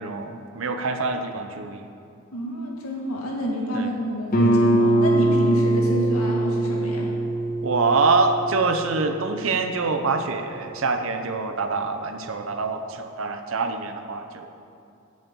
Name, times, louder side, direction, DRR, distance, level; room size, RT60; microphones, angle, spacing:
voice 1, 0.0-1.9 3.7-3.9 7.6-14.5, right 4 dB, 60° right, 7 dB, 0.7 m, -25 dB
voice 2, 2.3-7.1, equal, 75° left, -2 dB, 2.1 m, -28 dB
Guitar, 4.3-9.7, right 1 dB, 40° left, 1.4 m, -22 dB
8.2 x 6.4 x 8.2 m, 2.5 s
head